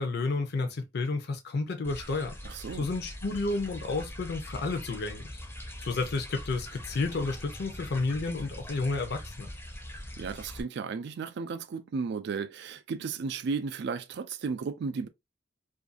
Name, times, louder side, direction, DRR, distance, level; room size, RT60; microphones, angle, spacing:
voice 1, 0.0-2.3 2.8-5.2 5.8-9.5, left 3 dB, 60° left, 0.5 m, -31 dB
sound 1, 1.8-10.6, left 1 dB, 10° left, 0.5 m, -42 dB
voice 2, 2.4-2.9 10.2-15.1, right 5 dB, 60° right, 0.3 m, -34 dB
2.5 x 2.3 x 2.4 m
head